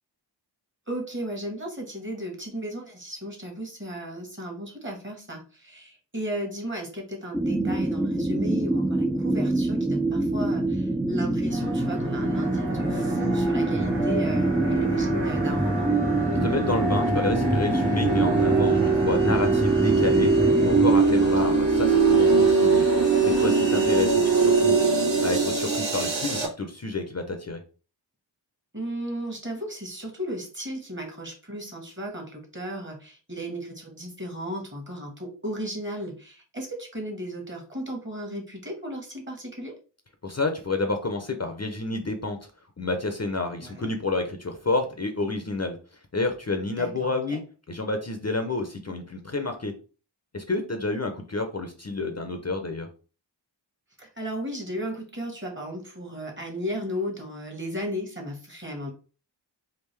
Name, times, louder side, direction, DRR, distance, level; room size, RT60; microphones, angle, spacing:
voice 1, 0.9-15.9 21.2-21.6 28.7-39.8 43.6-43.9 46.8-47.4 54.0-58.9, equal, 25° right, 1 dB, 1.3 m, -35 dB
sound 1, 7.3-21.0, right 1 dB, 5° right, 0.3 m, -25 dB
sound 2, 11.5-26.5, right 4 dB, 75° right, 1.1 m, -23 dB
voice 2, 16.4-20.3 20.6-22.8 23.2-24.8 25.2-27.6 40.2-42.4 42.8-45.8 46.1-47.4 47.7-49.7 50.3-52.9, left 3 dB, 35° left, 5 dB, 0.6 m, -29 dB
3.6 x 2.5 x 3.2 m, 0.36 s
wide cardioid pair, 45°, 44 cm